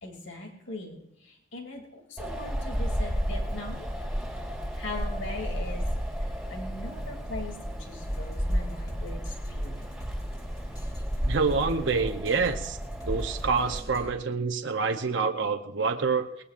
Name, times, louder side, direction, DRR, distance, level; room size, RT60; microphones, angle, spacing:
voice 1, 0.0-3.9 4.7-5.9 6.2-9.9, left 2 dB, 80° left, 2 dB, 2.8 m, -40 dB
Wind, 2.2-13.8, equal, ahead, 2.8 m, -32 dB
sound 1, 8.0-14.1, equal, 20° left, 3.4 m, -41 dB
voice 2, 11.2-12.8 13.1-16.4, right 4 dB, 70° right, 6 dB, 0.8 m, -27 dB
21.0 x 19.5 x 2.6 m, 0.78 s
head